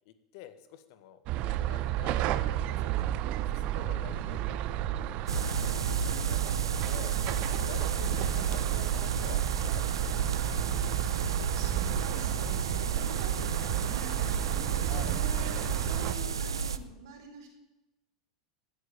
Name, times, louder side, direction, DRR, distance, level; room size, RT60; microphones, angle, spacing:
voice 1, 0.0-3.2 3.5-4.9 5.6-7.2 7.5-10.3 14.8-15.2, left 12 dB, 60° left, 11 dB, 1.7 m, -48 dB
sound 1, 1.3-16.1, right 13 dB, 50° right, 0.8 m, -32 dB
sound 2, 5.3-16.8, right 6 dB, 90° right, 0.8 m, -32 dB
voice 2, 8.1-8.5 11.3-17.5, right 4 dB, 70° right, 3 dB, 4.8 m, -46 dB
16.0 x 9.4 x 8.4 m, 0.96 s
hypercardioid pair, 95°, 2 cm